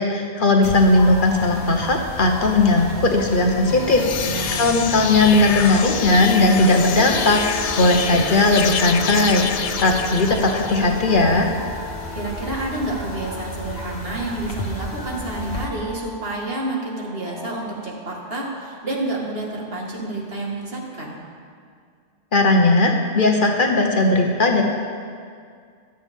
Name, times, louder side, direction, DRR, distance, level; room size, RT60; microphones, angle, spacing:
voice 1, 0.0-4.1 4.6-11.5 22.3-24.6, left 2 dB, 50° left, 2 dB, 1.2 m, -18 dB
sound 1, 0.6-15.7, left 1 dB, 65° left, 1.6 m, -34 dB
sound 2, 3.2-18.7, left 2 dB, 35° left, 4.0 m, -38 dB
sound 3, 3.7-11.1, left 7 dB, 90° left, 1.0 m, -28 dB
voice 2, 4.2-4.7 12.1-21.2, right 2 dB, 60° right, -2 dB, 2.2 m, -29 dB
23.0 x 7.9 x 3.6 m, 2.1 s
omnidirectional pair, 1.1 m